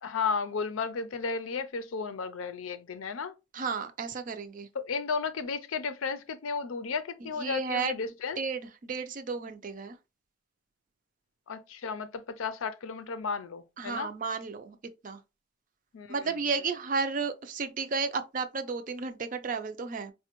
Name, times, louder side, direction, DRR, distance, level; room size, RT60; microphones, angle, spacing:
voice 1, 0.0-3.3 4.7-8.4 11.5-14.1 15.9-16.3, left 5 dB, 85° left, 0.5 m, -33 dB
voice 2, 3.5-4.7 7.2-8.0 8.4-10.0 13.8-14.8 15.0-15.2 16.1-20.1, right 4 dB, 40° right, 0.4 m, -33 dB
4.1 x 2.2 x 2.9 m
head